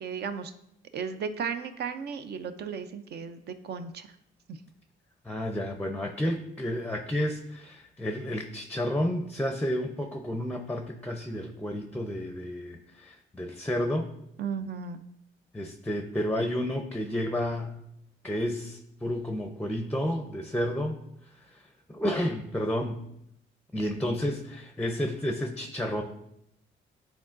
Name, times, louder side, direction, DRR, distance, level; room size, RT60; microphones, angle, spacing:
voice 1, 0.0-0.5 0.9-4.1 4.5-4.6 14.4-15.0, right 6 dB, 55° right, 9 dB, 0.5 m, -35 dB
voice 2, 5.2-14.1 15.5-17.8 18.2-21.0 21.4-21.6 21.9-23.0 23.7-26.0, equal, 5° left, 5 dB, 0.5 m, -31 dB
10.0 x 3.8 x 2.5 m, 0.79 s
cardioid pair, 90°, 20 cm